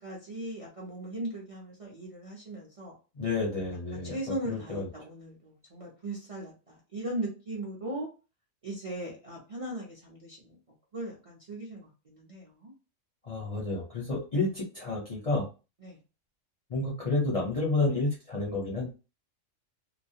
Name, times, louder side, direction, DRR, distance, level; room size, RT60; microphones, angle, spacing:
voice 1, 0.0-2.9 3.9-8.1 8.6-10.6 10.9-12.7 15.8-16.0, right 1 dB, 40° right, -3 dB, 0.5 m, -38 dB
voice 2, 3.1-4.2 4.5-4.9 13.2-15.5 16.7-18.9, left 2 dB, 40° left, -4 dB, 0.5 m, -30 dB
2.3 x 2.0 x 2.6 m, 0.31 s
omnidirectional pair, 1.3 m